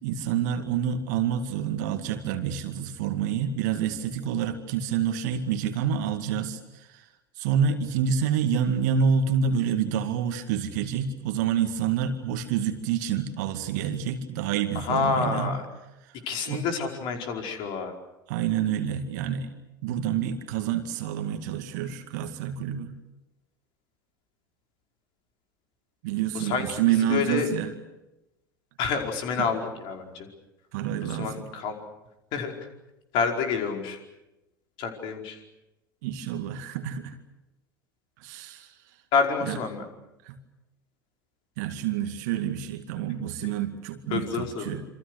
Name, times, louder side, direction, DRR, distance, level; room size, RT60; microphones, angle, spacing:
voice 1, 0.0-7.1 7.4-15.6 16.1-16.2 16.5-16.6 18.3-19.5 19.8-22.9 26.0-27.7 29.4-29.5 30.7-31.4 36.0-37.2 38.2-38.8 39.4-39.6 40.2-40.4 41.6-44.8, right 8 dB, 55° right, 7 dB, 2.2 m, -28 dB
voice 2, 14.7-15.7 16.3-17.9 26.3-27.5 28.8-30.3 31.1-31.8 32.3-32.5 33.1-34.0 34.8-35.4 39.1-39.8 44.1-44.7, left 5 dB, 45° left, 3 dB, 5.0 m, -28 dB
28.0 x 26.5 x 6.5 m, 0.95 s
figure-of-eight pair, 80°, 11 cm